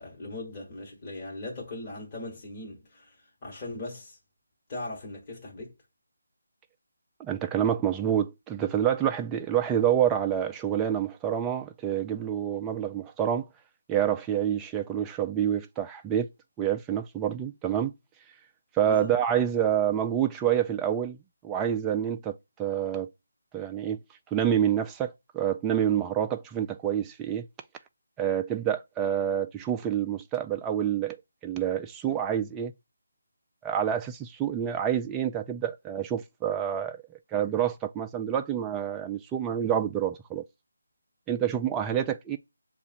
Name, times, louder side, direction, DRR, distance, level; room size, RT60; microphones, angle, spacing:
voice 1, 0.0-3.1 3.4-4.2 4.7-5.7 18.8-19.1, left 2 dB, 25° left, 1.4 m, -39 dB
voice 2, 7.2-13.5 13.9-16.3 16.6-17.9 18.8-21.2 21.4-23.1 23.5-24.0 24.3-27.5 28.2-31.2 31.4-32.7 33.6-37.0 37.3-40.4 41.3-42.4, right 9 dB, 10° right, 0.3 m, -27 dB
7.0 x 2.4 x 2.6 m
figure-of-eight pair, 160°, 0 cm